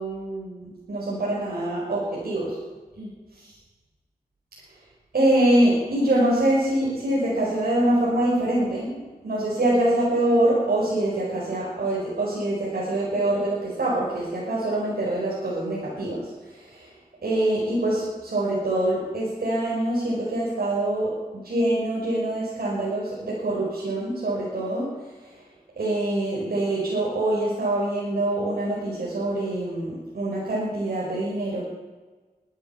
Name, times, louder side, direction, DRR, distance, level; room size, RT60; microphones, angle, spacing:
voice 1, 0.0-2.5 3.0-3.5 5.1-16.9 17.2-21.1 21.4-24.9 25.2-25.3 25.8-31.6, right 1 dB, 80° right, -6 dB, 5.2 m, -25 dB
21.0 x 11.5 x 5.7 m, 1.3 s
cardioid pair, 50°, 16 cm